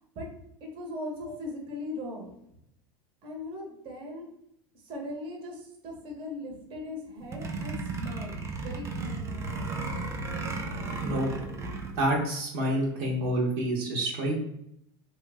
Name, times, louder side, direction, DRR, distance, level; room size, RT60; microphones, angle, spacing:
voice 1, 0.6-2.3 3.2-4.3 4.8-9.4, left 1 dB, 45° right, 0 dB, 1.1 m, -39 dB
sound 1, 7.2-12.1, right 3 dB, 25° right, 0.5 m, -34 dB
voice 2, 11.9-14.3, right 1 dB, 70° right, -2 dB, 1.0 m, -28 dB
3.2 x 2.3 x 3.4 m, 0.76 s
supercardioid pair, 120°, 13 cm